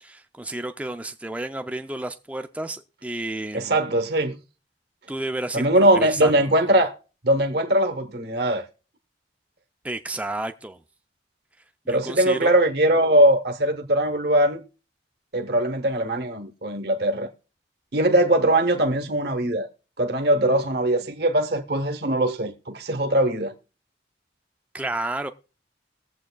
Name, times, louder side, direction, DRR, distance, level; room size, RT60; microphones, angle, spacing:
voice 1, 0.0-3.8 5.1-6.4 6.6-6.8 9.8-10.8 11.9-12.5 24.7-25.3, right 2 dB, 5° right, 0.4 m, -31 dB
voice 2, 3.5-4.4 5.5-6.9 7.2-8.6 11.9-14.6 15.3-17.3 17.9-19.7 20.0-23.5, right 1 dB, 55° right, 0.9 m, -21 dB
21.5 x 7.5 x 2.2 m
head